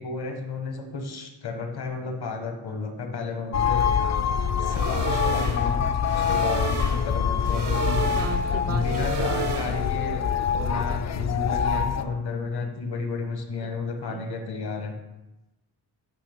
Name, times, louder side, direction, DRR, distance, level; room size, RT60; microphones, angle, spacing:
voice 1, 0.0-3.9 4.6-5.9 6.3-8.0 8.7-10.2 10.5-14.9, left 4 dB, 65° left, 4 dB, 1.3 m, -32 dB
sound 1, 3.5-12.0, left 7 dB, 40° left, 0.4 m, -25 dB
sound 2, 4.7-10.1, right 6 dB, 70° right, 0.9 m, -33 dB
voice 2, 7.9-9.8 13.6-13.7 14.1-14.2, right 6 dB, 40° right, 10 dB, 0.4 m, -37 dB
8.5 x 3.2 x 5.1 m, 0.99 s
cardioid pair, 80°, 42 cm